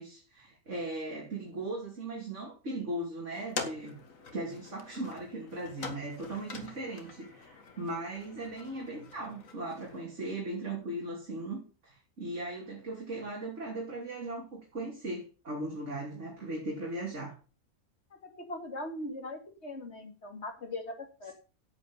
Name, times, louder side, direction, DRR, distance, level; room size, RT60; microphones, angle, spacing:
voice 1, 0.0-3.9 4.3-17.4, right 2 dB, 55° right, 3.5 m, -38 dB
sound 1, 3.3-10.1, left 4 dB, 65° left, 2.2 m, -44 dB
voice 2, 18.1-21.3, left 2 dB, 50° left, 2.9 m, -40 dB
10.5 x 8.6 x 5.6 m
omnidirectional pair, 1.5 m